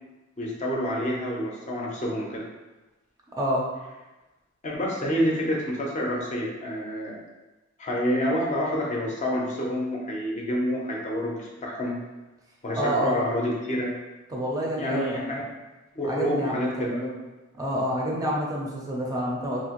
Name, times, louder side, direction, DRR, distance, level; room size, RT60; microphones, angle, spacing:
voice 1, 0.4-2.4 4.6-7.2 7.8-11.9 12.6-13.9 14.8-15.5 16.0-17.1, equal, 35° left, -2 dB, 0.5 m, -28 dB
voice 2, 3.4-3.7 12.8-13.2 14.3-15.5 16.0-17.1 17.5-19.6, equal, 20° right, -3 dB, 0.5 m, -28 dB
2.8 x 2.6 x 2.9 m, 1.1 s
head